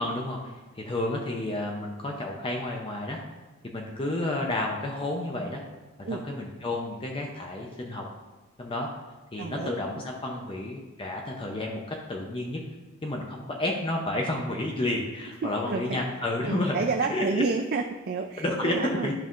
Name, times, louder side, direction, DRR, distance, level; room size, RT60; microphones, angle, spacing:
voice 1, 0.0-3.2 3.6-5.6 6.1-8.0 8.6-8.9 9.3-12.6 13.0-16.8 17.1-17.4 18.4-18.8 19.0-19.1, left 1 dB, 25° left, 0 dB, 0.6 m, -31 dB
voice 2, 9.4-10.0 15.4-16.0 16.4-19.1, right 4 dB, 45° right, 4 dB, 0.4 m, -30 dB
12.0 x 5.4 x 2.5 m, 1.2 s
head